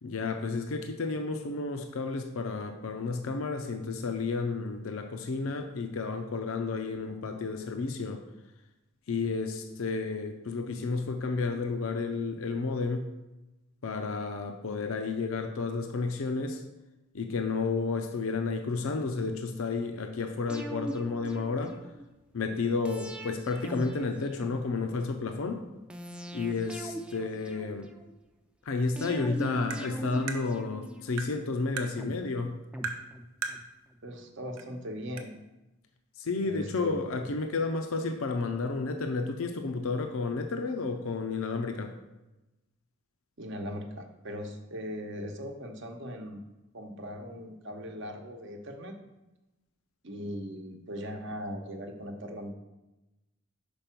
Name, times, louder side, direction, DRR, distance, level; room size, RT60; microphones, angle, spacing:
voice 1, 0.0-8.2 9.1-13.1 13.8-16.6 17.1-21.8 22.3-25.6 26.3-27.9 28.7-32.6 36.2-41.9, left 4 dB, 75° left, 6 dB, 0.5 m, -31 dB
sound 1, 20.5-22.1 22.8-25.0 25.9-28.1 29.0-31.3 32.0-33.6 33.9-34.0, equal, 5° right, 0.4 m, -41 dB
Tap, 29.7-29.8 30.3-30.4 31.2-31.3 31.8-31.9 32.8-33.0 33.4-33.6 34.6-34.7 35.2-35.3, right 5 dB, 90° right, 0.7 m, -35 dB
voice 2, 34.0-35.3 36.4-37.0 43.4-46.4 46.7-48.9 50.0-52.5, equal, 60° right, 4 dB, 0.9 m, -39 dB
5.3 x 4.4 x 5.9 m, 1.0 s
head